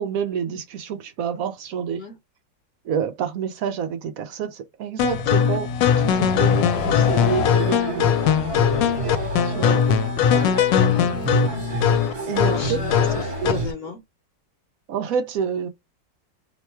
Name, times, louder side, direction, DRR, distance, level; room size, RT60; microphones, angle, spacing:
voice 1, 0.0-2.0 2.8-5.7 6.0-8.2 9.4-9.9 12.3-13.6 14.9-15.7, right 7 dB, 70° right, 0.8 m, -28 dB
sound 1, 5.0-13.7, left 8 dB, 85° left, 1.3 m, -20 dB
sound 2, 6.7-13.7, right 3 dB, 25° right, 0.8 m, -30 dB
voice 2, 8.7-9.1 10.9-11.7 12.5-12.8 13.2-14.0, left 3 dB, 60° left, 1.2 m, -36 dB
3.0 x 2.2 x 4.2 m
omnidirectional pair, 2.0 m